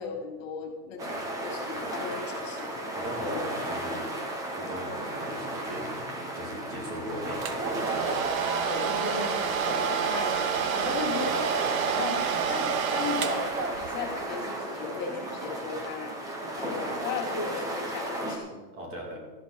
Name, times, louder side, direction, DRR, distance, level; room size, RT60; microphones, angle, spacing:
voice 1, 0.0-2.9 3.2-3.4 3.9-4.0 8.7-10.4 10.7-16.2 16.6-18.6, left 5 dB, 50° left, 2 dB, 3.3 m, -36 dB
sound 1, 1.0-18.4, right 1 dB, 5° right, 0.6 m, -34 dB
voice 2, 2.9-4.1 4.5-6.1 6.3-7.5 18.7-19.2, equal, 25° right, 0 dB, 2.8 m, -39 dB
Domestic sounds home sounds, 7.4-14.1, right 7 dB, 55° right, 1.3 m, -29 dB
14.0 x 12.0 x 4.4 m, 1.2 s
supercardioid pair, 170°, 48 cm